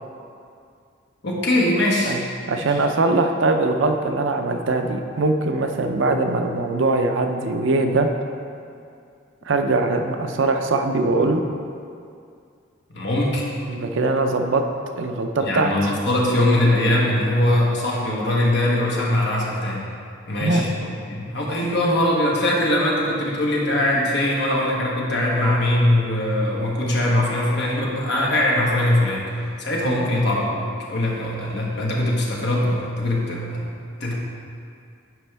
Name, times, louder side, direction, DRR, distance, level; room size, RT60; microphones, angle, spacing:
voice 1, 1.2-2.2 2.6-2.8 12.9-13.5 15.4-19.9 20.3-29.3 29.6-33.7 34.0-34.1, left 1 dB, 60° left, -3 dB, 1.3 m, -21 dB
voice 2, 2.5-8.1 9.5-11.4 13.7-14.6 14.9-15.7 20.4-20.6 29.9-30.0, right 2 dB, 70° right, 5 dB, 0.5 m, -21 dB
9.3 x 5.2 x 3.4 m, 2.4 s
head